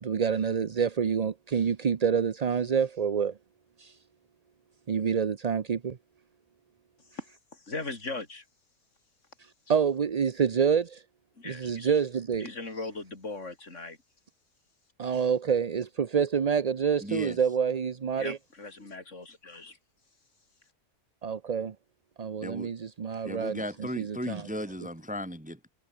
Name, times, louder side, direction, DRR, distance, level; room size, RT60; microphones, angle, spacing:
voice 1, 0.0-3.4 3.8-3.9 4.9-6.0 9.7-11.0 11.4-12.5 15.0-18.4 21.2-21.7 22.2-24.5, right 6 dB, 40° right, 0.5 m, -27 dB
voice 2, 7.7-8.4 11.4-11.9 12.4-14.0 18.2-19.8, left 3 dB, 50° left, 4.7 m, -39 dB
voice 3, 17.0-17.4 22.4-22.7 23.2-25.7, equal, 5° right, 2.2 m, -36 dB
omnidirectional pair, 1.6 m